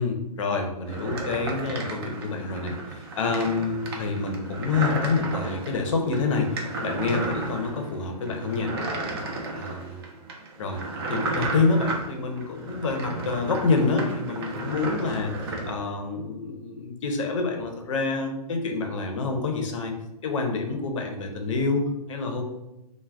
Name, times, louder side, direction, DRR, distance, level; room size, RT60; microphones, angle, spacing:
voice 1, 0.0-8.7 9.5-10.0 10.6-10.8 11.1-19.9 20.2-22.4, left 4 dB, 50° left, 4 dB, 0.5 m, -27 dB
sound 1, 0.9-15.7, right 2 dB, 40° right, 0.4 m, -33 dB
2.3 x 2.1 x 3.3 m, 0.93 s
hypercardioid pair, 150°, 21 cm